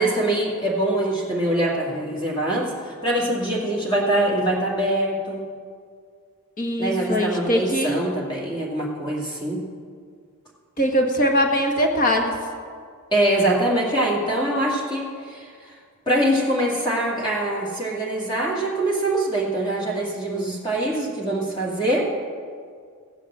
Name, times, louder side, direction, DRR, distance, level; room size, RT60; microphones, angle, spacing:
voice 1, 0.0-5.4 6.8-9.6 13.1-15.7 16.1-22.1, right 1 dB, 20° left, -4 dB, 2.1 m, -23 dB
voice 2, 6.6-8.0 10.8-12.4, equal, 40° left, 3 dB, 1.6 m, -21 dB
15.0 x 9.0 x 7.4 m, 2.1 s
head